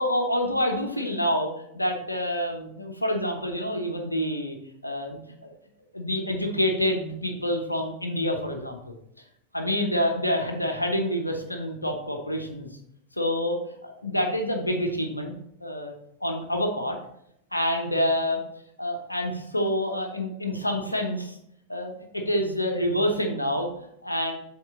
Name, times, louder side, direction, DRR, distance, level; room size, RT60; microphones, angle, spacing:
voice 1, 0.0-1.5 1.7-4.5 4.8-5.5 5.9-8.9 9.5-12.7 13.2-15.3 15.6-15.9 16.2-17.0 17.5-18.4 18.8-21.4 21.7-24.3, equal, 85° left, 3 dB, 0.9 m, -27 dB
7.4 x 3.8 x 3.7 m, 0.73 s
figure-of-eight pair, 90°, 0 cm